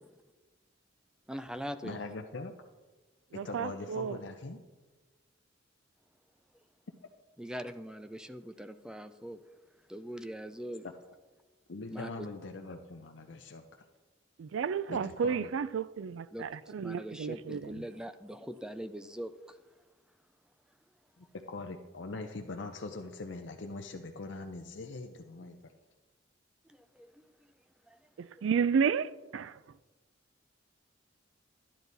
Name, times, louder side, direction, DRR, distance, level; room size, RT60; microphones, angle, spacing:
voice 1, 1.3-2.0 7.4-9.4 9.9-10.9 11.9-12.3 16.3-19.6 26.7-27.1 27.9-28.0 28.4-28.5, equal, 5° right, 0.4 m, -42 dB
voice 2, 1.8-2.5 3.4-4.6 11.7-13.9 14.9-15.5 21.2-25.7, left 3 dB, 65° left, 0.7 m, -42 dB
voice 3, 3.3-4.2 14.4-17.8 28.2-29.8, right 6 dB, 75° right, 0.4 m, -32 dB
12.5 x 10.0 x 4.0 m
head